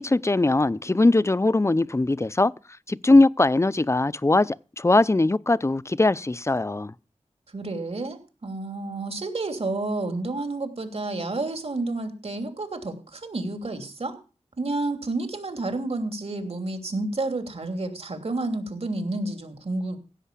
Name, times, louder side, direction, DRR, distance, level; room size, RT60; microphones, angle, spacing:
voice 1, 0.0-2.5 2.9-6.9, left 2 dB, 25° left, 0.6 m, -21 dB
voice 2, 7.5-14.2 14.6-20.0, right 2 dB, 60° right, 3.0 m, -30 dB
16.0 x 5.6 x 8.4 m
cardioid pair, 45°, 12 cm